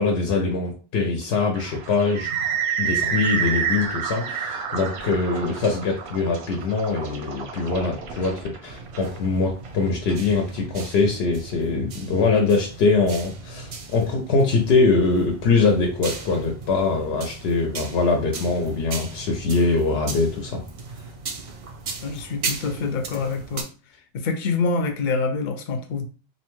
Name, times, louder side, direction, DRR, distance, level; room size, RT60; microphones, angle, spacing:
voice 1, 0.0-2.3 2.8-20.6, left 4 dB, 90° left, 2 dB, 0.8 m, -23 dB
sound 1, 1.5-10.9, right 7 dB, 90° right, 0.8 m, -29 dB
sound 2, 8.7-23.6, right 4 dB, 55° right, 0.4 m, -37 dB
voice 2, 22.0-23.7 24.1-26.0, left 4 dB, 60° left, 6 dB, 0.6 m, -26 dB
2.6 x 2.2 x 3.0 m, 0.38 s
omnidirectional pair, 1.0 m